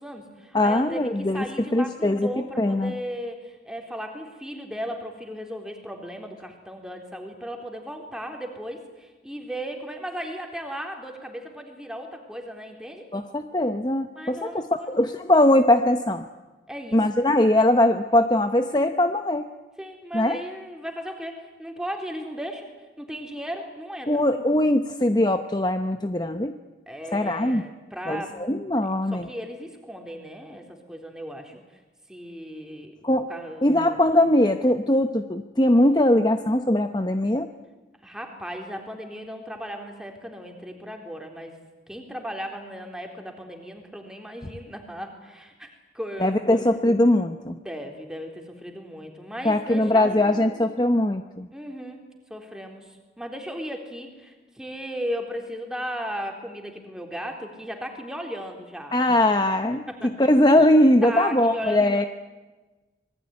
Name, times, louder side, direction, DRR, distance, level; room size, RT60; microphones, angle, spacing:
voice 1, 0.0-13.1 14.2-15.0 16.7-17.0 19.8-22.7 23.0-24.2 26.9-28.4 29.1-31.8 32.1-32.9 33.3-34.0 38.0-41.6 41.9-45.7 45.9-46.6 47.5-50.6 51.5-52.0 52.3-59.0 59.9-60.1 61.0-62.1, equal, 5° right, 3 dB, 3.8 m, -36 dB
voice 2, 0.5-1.4 1.7-2.3 2.6-2.9 13.1-16.2 16.9-19.4 20.1-20.4 24.1-26.6 27.1-27.6 28.1-29.3 33.0-33.3 33.6-37.5 46.2-47.6 49.4-51.5 58.9-59.8 60.2-62.0, left 1 dB, 25° left, 7 dB, 0.8 m, -21 dB
26.5 x 21.0 x 9.7 m, 1.2 s
head